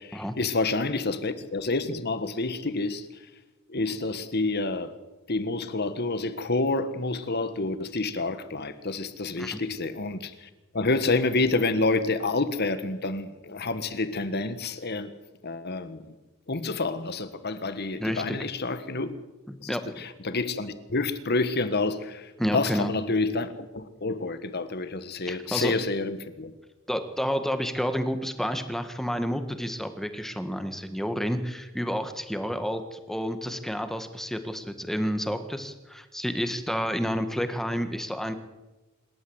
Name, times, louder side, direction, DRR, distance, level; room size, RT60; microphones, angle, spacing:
voice 1, 0.0-3.1 3.7-4.9 5.3-10.5 10.7-15.1 15.4-16.1 16.5-19.1 19.6-26.5, left 3 dB, 50° left, 1.5 m, -28 dB
voice 2, 18.0-18.4 19.5-20.0 22.4-22.9 25.3-25.8 26.9-38.3, equal, ahead, 1.6 m, -30 dB
27.0 x 12.5 x 8.0 m
head